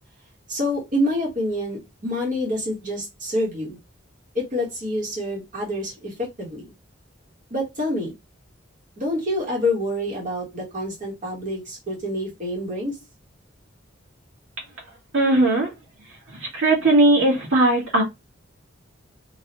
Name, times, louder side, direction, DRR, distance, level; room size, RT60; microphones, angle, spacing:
voice 1, 0.5-3.8 4.3-6.7 7.5-8.1 9.0-13.0, left 1 dB, 40° right, 1.3 m, -27 dB
voice 2, 15.1-15.7 16.3-18.0, right 2 dB, 85° right, 1.4 m, -18 dB
3.1 x 2.4 x 2.9 m
head